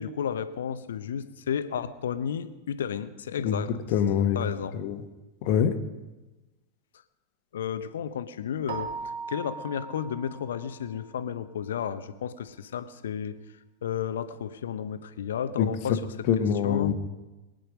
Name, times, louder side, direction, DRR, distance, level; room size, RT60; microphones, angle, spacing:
voice 1, 0.0-3.8 4.3-4.8 7.5-8.9 9.3-13.4 13.8-16.0 16.4-16.9, left 8 dB, 65° left, 12 dB, 0.9 m, -32 dB
voice 2, 3.9-4.4 4.8-5.0 5.4-5.7 15.6-15.7 16.3-16.9, left 8 dB, 45° left, 8 dB, 1.4 m, -24 dB
Keyboard (musical), 8.7-11.1, right 5 dB, 55° right, 2.0 m, -39 dB
22.5 x 9.4 x 5.2 m, 1.1 s
figure-of-eight pair, 90°, 0 cm